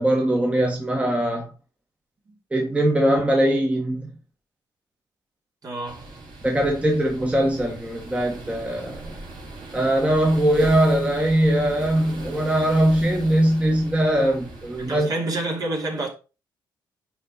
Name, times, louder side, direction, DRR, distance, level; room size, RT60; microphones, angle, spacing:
voice 1, 0.0-1.4 2.5-4.1 6.4-9.1 9.7-15.1, right 1 dB, 15° right, 1.7 m, -21 dB
voice 2, 5.6-6.2 14.8-16.1, right 2 dB, 45° right, 2.9 m, -29 dB
sound 1, 5.9-15.0, right 2 dB, 60° right, 3.6 m, -39 dB
10.0 x 4.5 x 4.2 m
cardioid pair, 95°, 9 cm